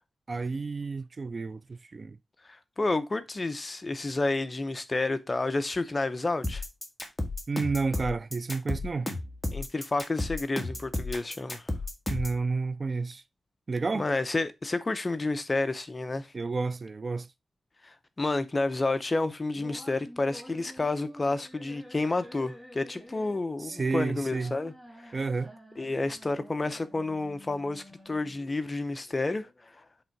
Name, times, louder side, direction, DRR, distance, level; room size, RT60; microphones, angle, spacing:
voice 1, 0.3-2.2 7.5-9.1 12.1-13.2 13.7-14.1 16.3-17.3 23.6-24.6 25.1-25.5, right 4 dB, 40° right, 0.4 m, -31 dB
voice 2, 2.4-6.6 9.5-11.7 13.9-16.3 17.8-25.2 25.8-29.8, left 2 dB, 30° left, 0.6 m, -30 dB
sound 1, 6.4-12.4, left 2 dB, 10° left, 1.6 m, -33 dB
sound 2, 19.5-28.5, equal, 10° right, 1.9 m, -50 dB
7.8 x 3.6 x 4.5 m
wide cardioid pair, 110°, 0 cm